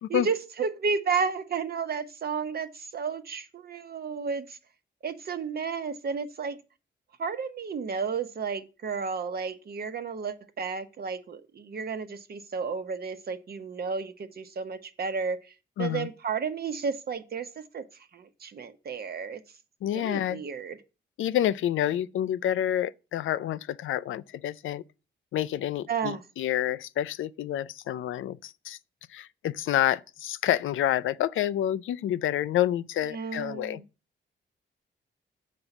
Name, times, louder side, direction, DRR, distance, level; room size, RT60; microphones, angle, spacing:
voice 1, 0.1-4.6 5.0-6.6 7.2-15.5 15.8-19.4 19.8-20.8 25.9-26.2 33.1-33.8, right 5 dB, 50° right, 1.0 m, -32 dB
voice 2, 15.8-16.1 19.8-20.4 21.2-24.8 25.3-28.8 29.1-33.8, left 11 dB, 90° left, 0.5 m, -28 dB
6.7 x 5.3 x 7.1 m
cardioid pair, 110°, 20 cm